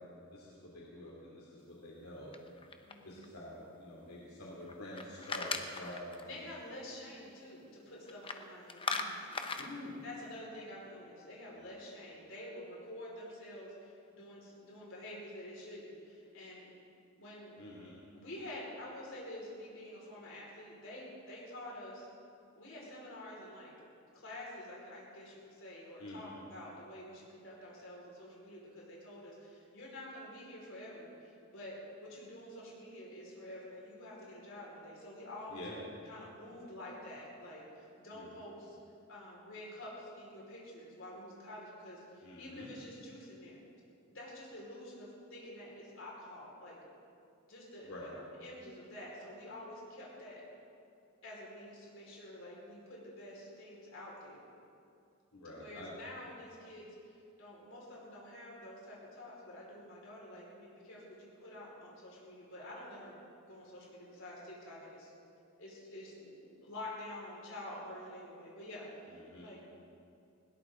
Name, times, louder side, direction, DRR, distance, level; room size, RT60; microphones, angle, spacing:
voice 1, 0.3-2.4 3.0-6.1 9.6-9.9 17.6-18.0 26.0-26.4 35.5-35.8 38.1-38.4 42.2-42.7 47.8-48.1 55.3-55.9 69.1-69.5, left 1 dB, 90° left, -5 dB, 2.9 m, -47 dB
sound 1, 2.3-3.2 4.7-6.2 8.1-8.4 8.7-9.7, left 4 dB, 25° left, 0.8 m, -38 dB
voice 2, 2.8-3.2 6.2-9.3 10.0-16.7 17.2-17.6 18.1-22.1 22.5-23.7 24.1-35.6 36.1-38.8 39.1-43.6 44.1-46.8 47.5-50.4 51.2-54.5 55.5-56.9 57.4-63.2 63.5-65.1 65.6-69.1 69.4-69.7, left 1 dB, 65° left, -5 dB, 5.1 m, -48 dB
20.5 x 17.5 x 3.9 m, 2.5 s
head